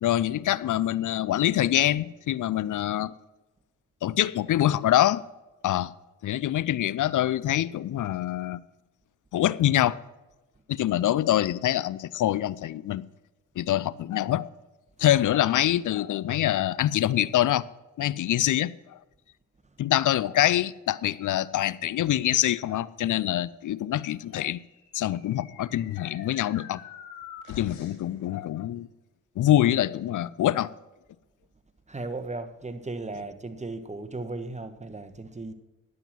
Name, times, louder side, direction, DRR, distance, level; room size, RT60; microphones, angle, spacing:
voice 1, 0.0-3.1 4.0-5.2 5.6-5.9 6.2-8.6 9.3-10.0 10.7-13.0 13.6-14.5 15.0-17.7 18.0-19.0 19.8-24.6 24.9-26.8 27.5-28.9 29.4-30.7, left 12 dB, 60° left, 0.6 m, -25 dB
sound 1, 24.6-28.1, left 7 dB, 85° left, 2.2 m, -46 dB
voice 2, 31.9-35.5, right 2 dB, 20° right, 1.3 m, -36 dB
11.0 x 7.7 x 6.0 m
hypercardioid pair, 45°, 36 cm